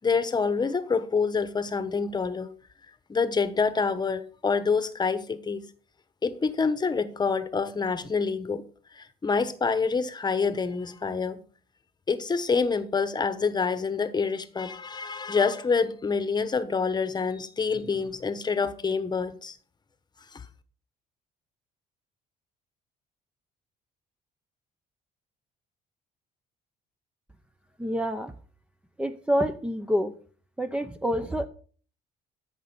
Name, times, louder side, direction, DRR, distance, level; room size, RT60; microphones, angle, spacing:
voice 1, 0.0-2.5 3.1-5.6 6.2-8.6 8.9-11.4 12.1-19.6 20.3-20.4, left 5 dB, 25° left, 1.1 m, -27 dB
voice 2, 27.8-28.3 29.0-30.2 30.6-31.5, equal, 5° right, 0.7 m, -27 dB
14.0 x 5.4 x 5.4 m
cardioid pair, 110°, 17 cm